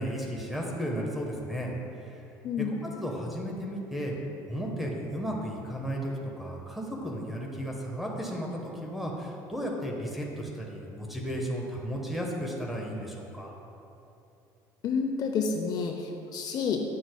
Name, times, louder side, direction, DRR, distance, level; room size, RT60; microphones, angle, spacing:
voice 1, 0.0-1.8 2.6-2.7 3.0-4.1 4.5-13.5, equal, ahead, -1 dB, 1.1 m, -34 dB
voice 2, 14.8-16.8, left 5 dB, 45° left, 3 dB, 0.5 m, -29 dB
9.8 x 6.0 x 2.2 m, 2.8 s
supercardioid pair, 105°, 9 cm